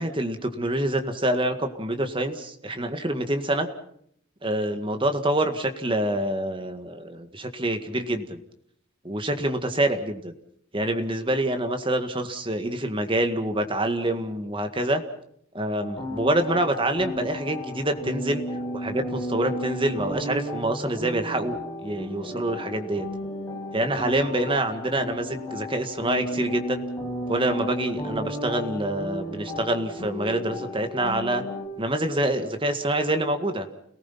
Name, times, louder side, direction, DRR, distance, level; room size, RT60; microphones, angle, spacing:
voice 1, 0.0-3.7 4.4-8.4 9.0-10.3 10.7-15.0 15.5-18.4 18.7-23.1 23.7-26.8 27.3-31.4 31.8-33.7, right 1 dB, 25° right, 7 dB, 1.9 m, -26 dB
sound 1, 15.8-31.7, equal, 15° left, 6.5 m, -34 dB
30.0 x 19.0 x 5.8 m, 0.68 s
head